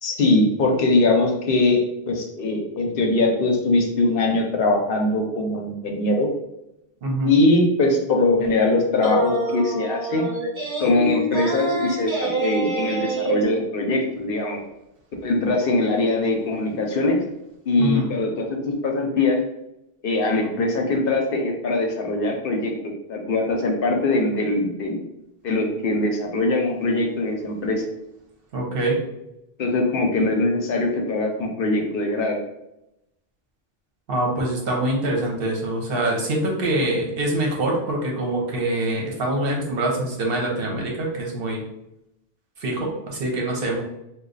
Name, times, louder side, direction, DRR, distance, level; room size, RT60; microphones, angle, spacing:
voice 1, 0.0-6.3 7.2-10.3 10.8-14.6 15.2-17.2 17.7-19.4 20.0-22.7 23.1-25.0 25.4-27.9 29.6-32.4, left 2 dB, 65° left, 1 dB, 0.8 m, -22 dB
voice 2, 7.0-7.3 17.8-18.1 28.5-29.0 34.1-41.6 42.6-43.8, right 1 dB, 65° right, -1 dB, 1.0 m, -24 dB
sound 1, 9.0-13.4, right 2 dB, 30° right, 1.1 m, -26 dB
3.1 x 2.2 x 3.8 m, 0.87 s
omnidirectional pair, 1.0 m